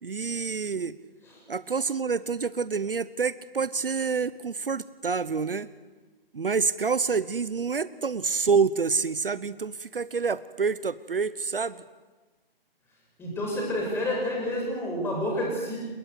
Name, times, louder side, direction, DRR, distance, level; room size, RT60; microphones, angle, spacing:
voice 1, 0.0-1.0 1.5-5.7 6.3-11.8, right 5 dB, 65° right, 17 dB, 1.0 m, -27 dB
voice 2, 13.2-15.8, left 1 dB, 10° left, -1 dB, 7.1 m, -29 dB
29.5 x 18.0 x 8.3 m, 1.3 s
figure-of-eight pair, 145°, 30 cm